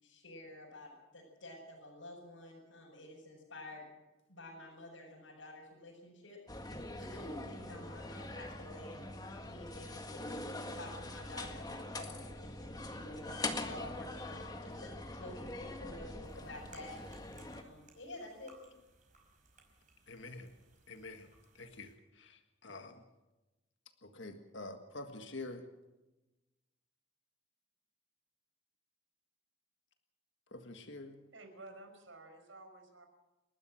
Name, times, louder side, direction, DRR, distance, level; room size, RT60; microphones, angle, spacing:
voice 1, 0.0-3.8 4.3-10.3 10.7-15.5 15.8-17.0 17.4-18.5, left 1 dB, 80° left, -5 dB, 6.3 m, -50 dB
sound 1, 6.5-17.6, left 2 dB, 20° left, 1.7 m, -43 dB
sound 2, 16.2-21.9, right 3 dB, 40° right, 5.0 m, -64 dB
voice 2, 20.1-20.5 20.9-21.3 21.6-23.0 24.0-25.7 30.5-31.2, left 2 dB, 65° left, 6 dB, 1.7 m, -47 dB
voice 3, 31.3-33.1, right 2 dB, 75° right, 6 dB, 5.2 m, -53 dB
29.5 x 12.5 x 7.7 m, 1.1 s
head